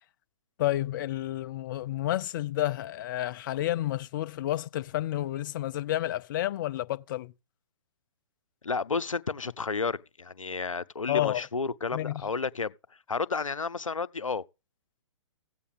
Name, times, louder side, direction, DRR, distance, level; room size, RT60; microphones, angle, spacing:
voice 1, 0.6-7.3 11.1-11.5 11.9-12.3, left 14 dB, 40° left, 0.5 m, -30 dB
voice 2, 8.6-12.7 13.1-14.4, left 4 dB, 90° left, 0.6 m, -31 dB
15.0 x 8.3 x 3.6 m
figure-of-eight pair, 125°, 16 cm